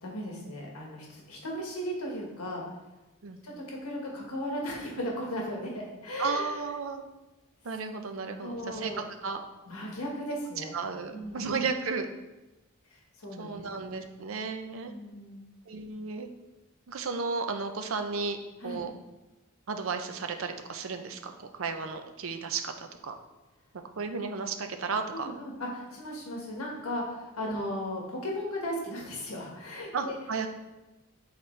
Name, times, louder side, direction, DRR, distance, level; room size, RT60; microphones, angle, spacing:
voice 1, 0.0-2.6 3.4-6.5 8.4-9.0 9.6-10.7 11.1-11.5 12.9-13.6 14.9-15.4 18.6-18.9 25.1-30.1, equal, 80° left, -2 dB, 1.5 m, -36 dB
voice 2, 6.2-7.0 7.6-9.4 10.6-12.1 13.4-14.9 15.7-16.3 16.9-18.4 18.6-18.9 19.7-23.1 23.7-25.3 29.9-30.5, right 4 dB, 65° right, 6 dB, 0.6 m, -34 dB
7.9 x 4.0 x 3.3 m, 1.0 s
head